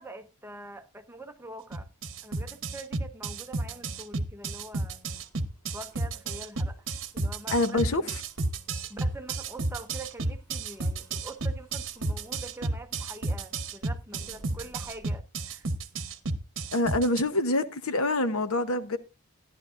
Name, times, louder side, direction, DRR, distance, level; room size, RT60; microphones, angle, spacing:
voice 1, 0.0-1.9 2.2-5.0 5.7-6.9 7.1-8.1 8.9-15.7, right 2 dB, 10° right, 0.8 m, -44 dB
sound 1, 1.7-17.2, right 3 dB, 60° right, 1.0 m, -31 dB
sound 2, 4.9-13.7 14.1-15.1, equal, 10° left, 7.5 m, -59 dB
voice 2, 7.5-8.0 16.7-19.0, left 2 dB, 65° left, 1.0 m, -26 dB
14.5 x 11.0 x 2.5 m
head